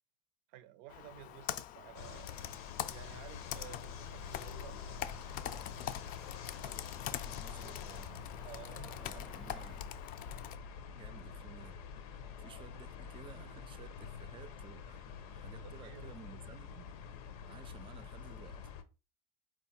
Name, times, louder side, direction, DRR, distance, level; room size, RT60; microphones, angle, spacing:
voice 1, 0.5-2.4 2.9-4.8 8.4-9.4 15.5-16.1, right 13 dB, 70° right, 0.6 m, -53 dB
Computer keyboard, 0.9-10.6, left 11 dB, 50° left, 0.4 m, -44 dB
sound 1, 1.9-18.8, left 7 dB, 85° left, 0.7 m, -47 dB
sound 2, 4.7-9.8, right 1 dB, ahead, 0.8 m, -57 dB
voice 2, 6.6-8.3 8.9-9.9 10.9-11.8 12.4-16.9 17.5-18.7, right 8 dB, 30° right, 0.4 m, -55 dB
4.6 x 2.4 x 4.3 m
supercardioid pair, 115°, 19 cm